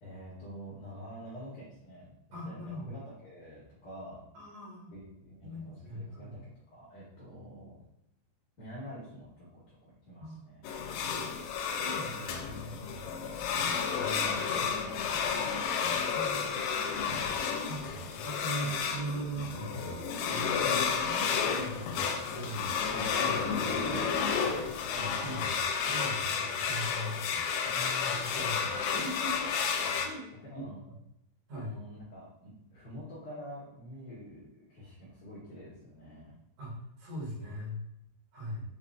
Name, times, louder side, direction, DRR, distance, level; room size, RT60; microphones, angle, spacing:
voice 1, 0.0-4.2 4.9-7.8 8.6-10.7 11.1-11.5 13.9-16.0 16.7-17.3 18.6-18.8 23.7-25.6 27.6-28.4 30.4-30.8 31.5-36.4, equal, 70° left, -8 dB, 1.9 m, -47 dB
voice 2, 2.3-2.9 4.3-4.9 5.4-6.3 10.2-10.4 11.8-13.3 16.1-16.9 17.7-20.9 21.4-23.7 24.9-27.5 28.0-29.5 30.0-30.7 31.5-31.8 36.6-37.8 38.3-38.6, right 1 dB, 70° right, -6 dB, 1.5 m, -41 dB
sound 1, 10.6-30.1, left 6 dB, 85° left, 3.0 m, -31 dB
6.9 x 2.4 x 2.5 m, 0.83 s
omnidirectional pair, 5.4 m